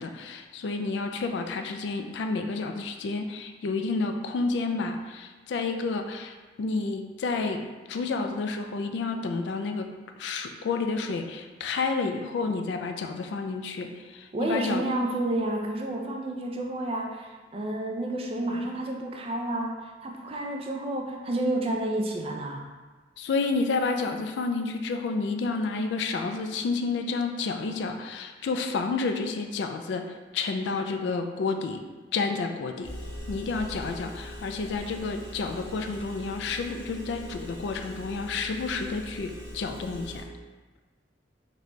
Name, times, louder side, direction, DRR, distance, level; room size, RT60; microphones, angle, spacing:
voice 1, 0.0-9.9 10.2-14.8 23.2-31.8 32.1-32.9 33.3-40.2, left 4 dB, 75° left, 6 dB, 0.3 m, -30 dB
voice 2, 14.3-19.7 20.0-22.7, right 1 dB, 35° right, 1 dB, 0.4 m, -30 dB
Engine, 32.8-40.2, equal, 45° left, 0.8 m, -41 dB
4.0 x 2.2 x 3.0 m, 1.3 s
head